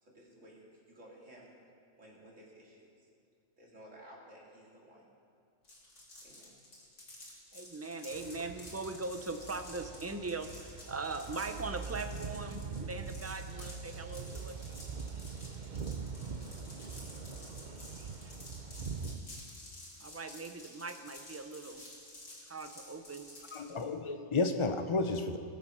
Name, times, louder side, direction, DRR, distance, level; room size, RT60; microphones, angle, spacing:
voice 1, 0.0-1.5 1.9-3.1 3.6-5.0 6.2-6.5, right 1 dB, 85° right, -4 dB, 2.9 m, -55 dB
sound 1, 5.6-23.8, left 1 dB, 75° left, 3.0 m, -52 dB
voice 2, 7.5-10.5 10.9-14.6 20.0-21.8 22.4-23.3, right 3 dB, 20° right, 7 dB, 0.4 m, -40 dB
sound 2, 8.1-19.2, right 5 dB, 45° right, 0.8 m, -43 dB
voice 3, 23.5-25.4, left 3 dB, 30° left, 7 dB, 0.7 m, -32 dB
19.5 x 7.3 x 5.5 m, 2.3 s
omnidirectional pair, 1.3 m